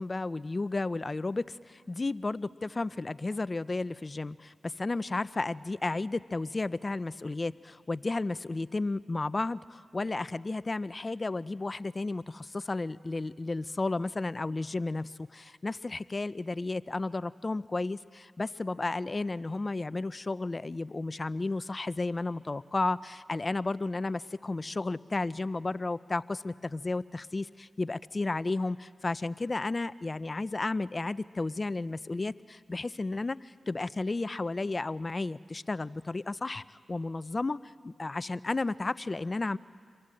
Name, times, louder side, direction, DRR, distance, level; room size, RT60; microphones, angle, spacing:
voice 1, 0.0-39.6, left 3 dB, 40° left, 17 dB, 0.6 m, -33 dB
28.0 x 23.0 x 7.7 m, 2.1 s
supercardioid pair, 40°, 0 cm